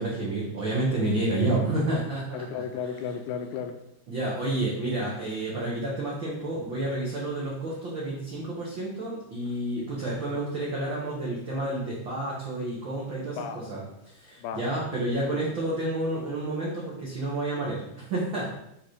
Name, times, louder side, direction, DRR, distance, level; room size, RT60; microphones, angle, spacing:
voice 1, 0.0-2.6 4.1-18.4, right 2 dB, 50° right, -6 dB, 1.5 m, -30 dB
voice 2, 2.3-3.7 13.4-13.6 14.4-14.6 15.3-15.4, left 7 dB, 75° left, 6 dB, 2.6 m, -34 dB
9.1 x 4.2 x 5.1 m, 0.79 s
omnidirectional pair, 4.8 m